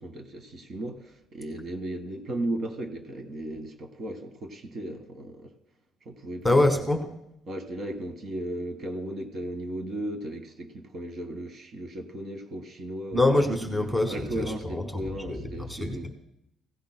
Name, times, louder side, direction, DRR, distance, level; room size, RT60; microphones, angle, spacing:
voice 1, 0.0-5.5 6.0-6.7 7.5-13.2 14.1-16.1, right 1 dB, 40° right, 7 dB, 1.5 m, -36 dB
voice 2, 6.4-7.1 13.1-15.0 15.3-16.1, left 2 dB, ahead, 4 dB, 1.4 m, -25 dB
17.0 x 15.5 x 2.2 m, 0.80 s
cardioid pair, 140°, 0 cm